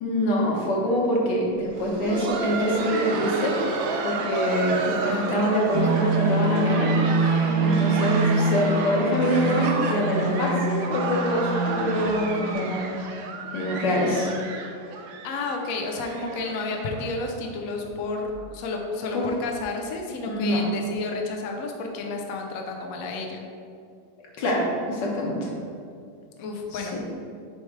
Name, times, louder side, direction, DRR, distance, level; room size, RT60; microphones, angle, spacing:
voice 1, 0.0-3.5 4.0-6.9 7.6-12.8 13.5-14.3 19.1-19.2 20.3-20.6 24.4-25.5, equal, 60° left, -2 dB, 1.7 m, -25 dB
Laughter, 1.6-17.3 17.6-17.7 18.3-18.4 18.9-19.1 20.2-20.3, right 4 dB, 75° right, 1.3 m, -32 dB
sound 1, 5.7-12.5, right 3 dB, 45° right, 0.8 m, -25 dB
voice 2, 15.2-23.4 26.4-27.0, left 3 dB, 80° left, 2 dB, 0.7 m, -31 dB
7.3 x 3.2 x 4.6 m, 2.3 s
omnidirectional pair, 2.3 m